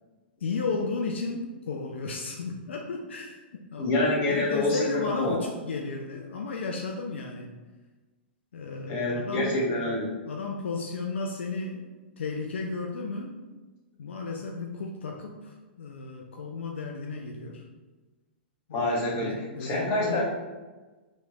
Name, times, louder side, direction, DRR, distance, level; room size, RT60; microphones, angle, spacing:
voice 1, 0.4-3.9 4.3-7.6 8.5-9.7 10.3-13.4 14.0-17.6 18.7-20.2, left 4 dB, 80° left, 1 dB, 0.4 m, -34 dB
voice 2, 3.8-5.4 8.9-10.1 18.7-20.2, left 1 dB, 40° left, -4 dB, 1.2 m, -27 dB
3.1 x 2.9 x 2.7 m, 1.2 s
hypercardioid pair, 120°, 6 cm